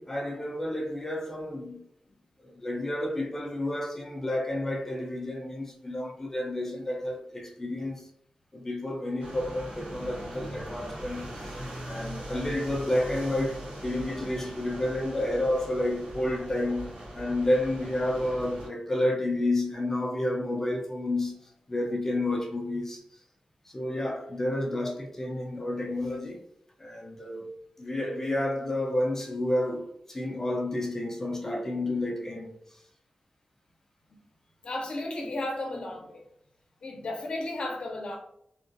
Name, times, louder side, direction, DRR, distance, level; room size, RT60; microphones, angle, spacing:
voice 1, 0.0-1.8 2.4-8.0 8.5-11.5 11.8-21.4 21.7-23.0 23.7-26.4 26.8-32.5, left 1 dB, 20° left, 0.6 m, -30 dB
sound 1, 9.2-18.7, right 1 dB, 75° right, 1.4 m, -40 dB
voice 2, 34.6-36.2 36.8-38.2, left 2 dB, 55° left, 0.8 m, -34 dB
3.5 x 2.4 x 2.6 m
wide cardioid pair, 170°, 2 cm